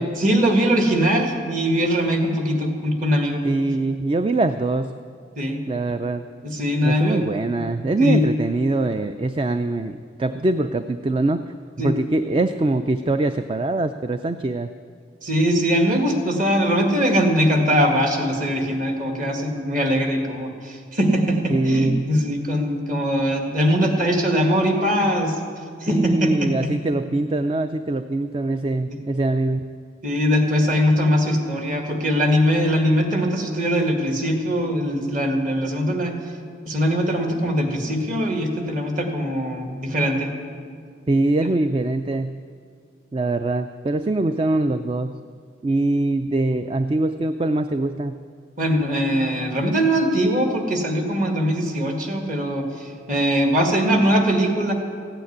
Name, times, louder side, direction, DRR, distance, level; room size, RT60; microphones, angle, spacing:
voice 1, 0.2-3.4 5.4-5.6 6.4-7.2 8.0-8.3 11.8-11.9 15.2-25.4 25.8-26.7 28.9-29.0 30.0-36.2 36.7-40.3 48.6-54.7, equal, 45° right, 3 dB, 2.0 m, -21 dB
voice 2, 3.4-5.0 5.7-6.2 6.8-14.7 21.5-22.1 25.9-29.6 41.1-42.5 43.1-45.2 45.6-48.2, right 2 dB, 30° right, 10 dB, 0.3 m, -23 dB
15.5 x 9.1 x 9.6 m, 2.2 s
head